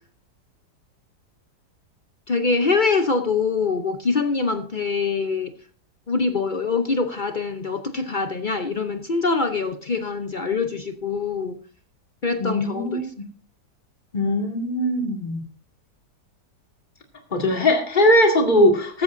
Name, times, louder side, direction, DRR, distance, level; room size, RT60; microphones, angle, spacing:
voice 1, 2.3-5.5 6.1-11.6 12.2-13.1, left 4 dB, 45° left, 0.6 m, -24 dB
voice 2, 12.4-13.0 14.1-15.4 17.3-19.0, left 1 dB, 30° left, 2.3 m, -20 dB
15.0 x 13.5 x 2.6 m
omnidirectional pair, 1.8 m